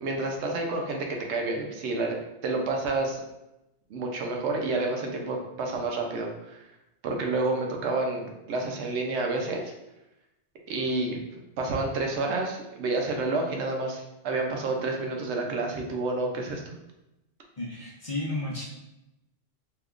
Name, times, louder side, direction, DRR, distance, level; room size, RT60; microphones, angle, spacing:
voice 1, 0.0-3.2 3.9-6.7 7.0-9.7 10.7-16.6, right 3 dB, 85° right, 1 dB, 0.9 m, -29 dB
voice 2, 17.6-18.7, left 2 dB, 35° left, -5 dB, 0.7 m, -32 dB
3.4 x 2.9 x 2.4 m, 0.93 s
omnidirectional pair, 1.1 m